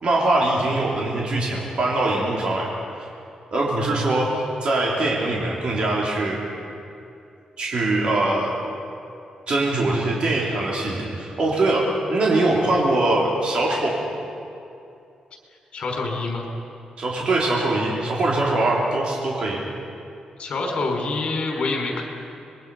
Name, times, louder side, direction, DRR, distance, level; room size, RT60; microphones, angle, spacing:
voice 1, 0.0-2.7 3.5-6.4 7.6-8.5 9.5-11.8 12.1-14.1 17.0-19.6, right 2 dB, 50° right, -3 dB, 3.5 m, -22 dB
voice 2, 15.7-16.5 20.4-22.0, left 3 dB, 55° left, 0 dB, 5.3 m, -26 dB
26.0 x 22.0 x 5.6 m, 2.6 s
wide cardioid pair, 140°, 2 cm